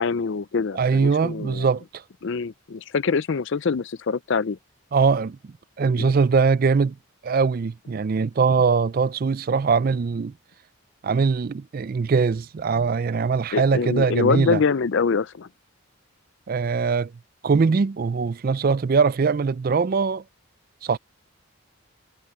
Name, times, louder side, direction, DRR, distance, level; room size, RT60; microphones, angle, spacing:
voice 1, 0.0-1.7 2.2-4.6 6.0-6.1 13.5-15.5, left 5 dB, 55° left, 0.5 m, -24 dB
voice 2, 0.7-2.0 4.9-7.0 7.2-10.3 11.0-14.6 16.5-17.1 17.4-20.2 20.8-21.0, right 5 dB, 40° right, 0.3 m, -22 dB
head